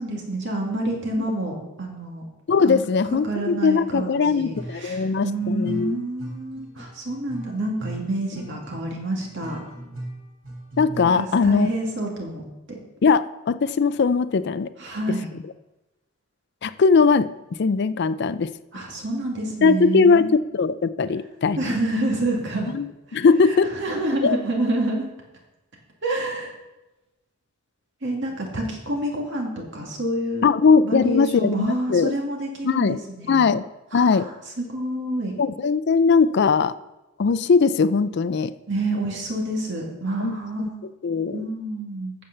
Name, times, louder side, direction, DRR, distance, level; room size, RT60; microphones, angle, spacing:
voice 1, 0.0-2.2 2.6-2.9 3.2-9.6 11.0-12.8 14.8-15.3 18.7-20.3 21.6-22.7 23.1-25.1 26.0-26.5 28.0-30.5 30.8-33.5 33.9-34.3 34.6-35.4 38.7-40.8 41.3-42.1, right 1 dB, 60° right, 0 dB, 2.3 m, -28 dB
voice 2, 2.5-6.0 10.8-11.7 13.0-14.7 16.6-17.3 17.6-18.5 19.6-21.7 22.7-23.7 24.2-24.4 30.4-32.1 32.6-33.0 33.3-33.6 33.9-34.3 35.4-36.8 37.2-38.5 40.2-40.7 41.0-41.4, left 5 dB, 55° left, 14 dB, 0.4 m, -20 dB
sound 1, 4.3-11.0, right 1 dB, 80° right, 3.8 m, -38 dB
8.6 x 7.1 x 6.7 m, 1.0 s
head